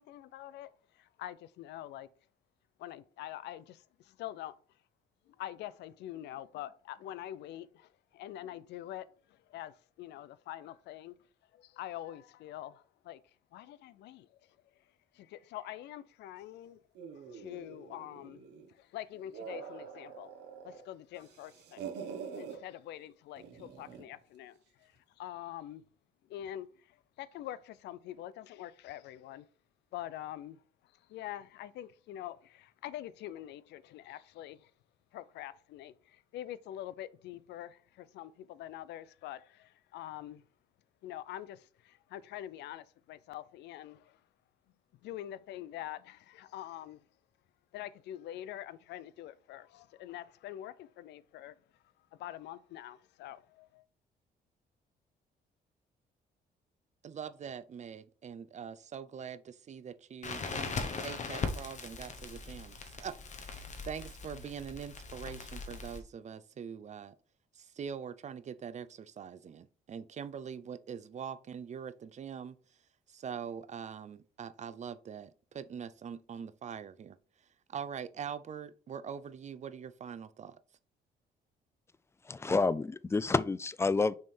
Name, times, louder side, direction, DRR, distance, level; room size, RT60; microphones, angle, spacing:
voice 1, 0.0-2.1 2.8-4.6 5.3-11.1 11.5-13.2 13.5-14.3 15.1-16.8 17.3-20.3 20.6-21.8 22.4-24.9 25.2-25.8 26.3-29.5 29.9-30.6 31.1-34.7 35.1-40.4 41.0-44.2 45.0-47.0 47.7-51.6 52.2-53.8, left 12 dB, 85° left, 0.4 m, -45 dB
sound 1, 16.9-18.7 19.1-20.8 21.1-22.6 23.4-24.1, right 6 dB, 90° right, 1.2 m, -45 dB
voice 2, 57.0-67.2 67.5-72.6 73.1-77.2 77.7-80.6, right 7 dB, 45° right, 0.5 m, -43 dB
Crackle, 60.2-66.0, left 4 dB, 45° left, 1.1 m, -40 dB
voice 3, 82.3-84.1, left 3 dB, 15° left, 0.3 m, -29 dB
6.3 x 3.5 x 4.3 m
cardioid pair, 95°, 17 cm